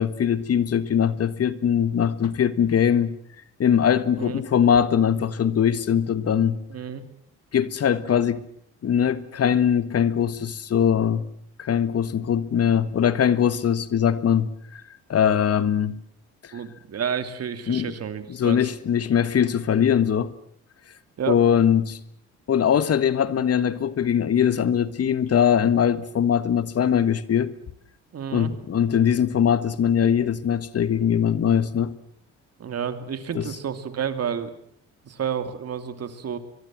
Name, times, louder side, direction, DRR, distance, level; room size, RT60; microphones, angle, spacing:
voice 1, 0.0-3.1 3.6-6.6 7.5-8.4 8.8-11.3 11.6-14.8 15.1-16.0 17.7-17.9 18.4-20.3 21.3-22.0 22.5-27.5 28.3-31.9 33.3-33.4, left 8 dB, 55° left, 15 dB, 1.6 m, -21 dB
voice 2, 6.7-7.0 16.5-18.7 21.2-21.4 28.1-28.5 32.6-34.5 35.0-36.4, right 7 dB, 55° right, 10 dB, 2.9 m, -30 dB
23.5 x 23.0 x 7.6 m, 0.67 s
cardioid pair, 90°, 30 cm